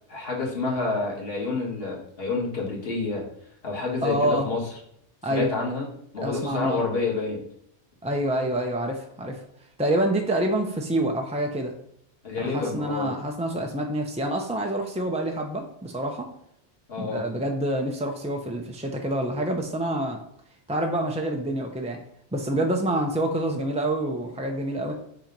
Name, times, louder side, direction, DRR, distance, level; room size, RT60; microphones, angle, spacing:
voice 1, 0.1-3.2 3.6-4.6 5.3-5.9 6.1-7.4 12.2-13.1 16.9-17.3, left 3 dB, 55° left, -4 dB, 1.9 m, -28 dB
voice 2, 4.0-4.5 5.2-5.5 6.2-6.8 8.0-9.4 9.8-11.7 12.4-16.3 17.0-20.2 20.7-22.0 22.3-24.9, right 1 dB, 10° right, 2 dB, 0.3 m, -27 dB
7.3 x 2.9 x 5.2 m, 0.73 s
omnidirectional pair, 1.2 m